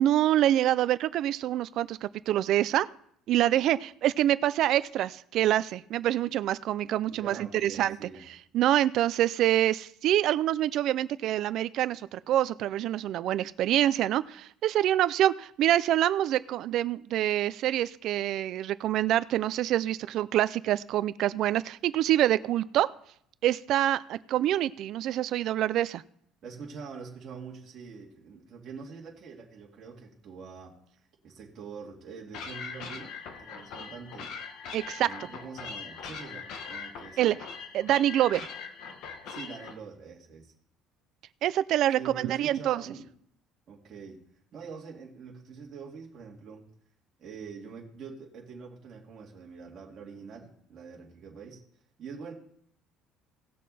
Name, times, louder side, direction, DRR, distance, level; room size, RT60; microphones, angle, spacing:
voice 1, 0.0-2.9 3.3-8.0 8.5-22.9 23.4-26.0 34.7-35.1 37.2-37.4 37.7-38.5 41.4-42.8, right 12 dB, 50° right, 17 dB, 0.4 m, -26 dB
voice 2, 7.1-8.2 26.4-30.8 31.2-33.1 33.4-34.3 35.0-37.4 39.3-40.5 41.9-43.1 43.7-44.2 44.5-46.6 47.2-51.6 52.0-52.3, right 5 dB, 35° right, -2 dB, 2.4 m, -44 dB
sound 1, 32.3-39.7, left 5 dB, 55° left, 1.3 m, -41 dB
17.5 x 6.4 x 4.2 m, 0.66 s
cardioid pair, 165°, 0 cm